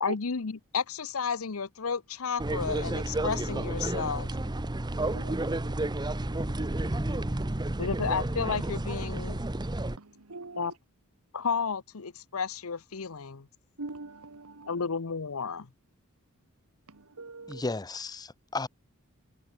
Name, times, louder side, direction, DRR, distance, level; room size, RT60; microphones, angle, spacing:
voice 1, 0.0-4.5 7.8-9.4 10.6-10.7 11.3-13.5 14.7-15.7, left 5 dB, 70° left, 0.8 m, -32 dB
sound 1, 2.4-10.0, right 1 dB, 20° right, 0.8 m, -31 dB
voice 2, 5.1-6.2 10.0-10.7 13.8-14.7 16.9-17.6, right 3 dB, 90° right, 1.6 m, -43 dB
voice 3, 17.5-18.7, left 3 dB, 20° left, 0.7 m, -34 dB
head